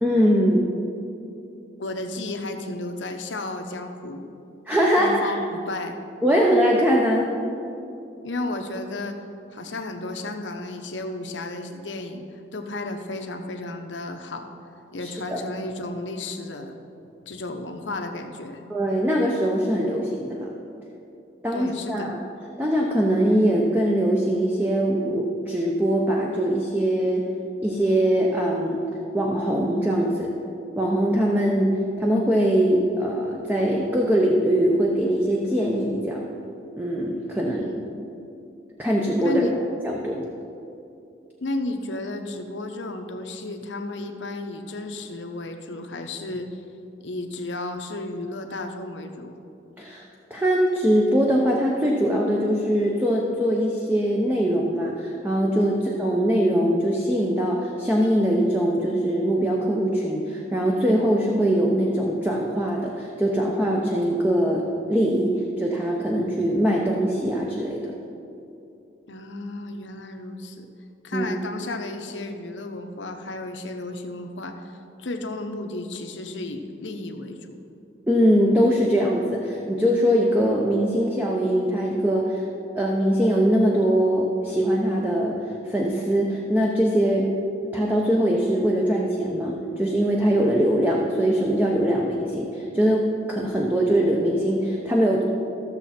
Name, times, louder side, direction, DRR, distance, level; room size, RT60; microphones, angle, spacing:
voice 1, 0.0-0.7 4.7-5.3 6.2-7.3 15.0-15.4 18.7-20.5 21.4-22.2 22.6-27.3 27.6-28.8 29.1-30.3 30.8-36.3 36.8-37.7 38.8-39.6 39.8-40.3 49.8-50.0 50.3-64.6 64.9-65.3 65.6-67.9 71.1-71.3 78.1-82.4 82.7-85.4 85.6-87.3 87.7-95.2, equal, 10° right, -2 dB, 0.7 m, -22 dB
voice 2, 1.8-4.3 5.0-6.0 8.2-9.2 9.5-14.5 14.9-16.7 17.3-18.6 21.5-22.1 37.6-38.0 39.2-39.5 41.4-46.6 47.0-49.3 69.1-70.7 71.0-77.6, left 2 dB, 90° left, 5 dB, 0.9 m, -33 dB
14.5 x 6.9 x 4.3 m, 2.7 s
head